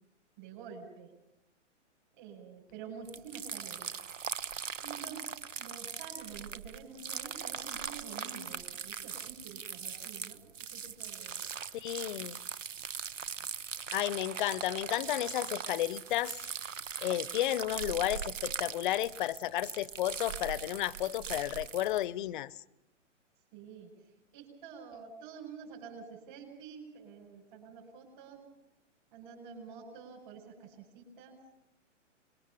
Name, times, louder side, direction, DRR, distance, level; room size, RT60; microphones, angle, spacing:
voice 1, 0.4-1.1 2.2-3.9 4.8-5.3 5.6-11.4 23.5-23.9 24.3-28.4 29.1-31.4, right 6 dB, 40° right, 5.8 m, -48 dB
sound 1, 3.1-22.1, right 7 dB, 80° right, 1.1 m, -40 dB
voice 2, 11.7-12.4 13.9-16.4 17.0-22.5, left 14 dB, 40° left, 0.8 m, -32 dB
24.5 x 22.0 x 7.0 m
hypercardioid pair, 135°, 37 cm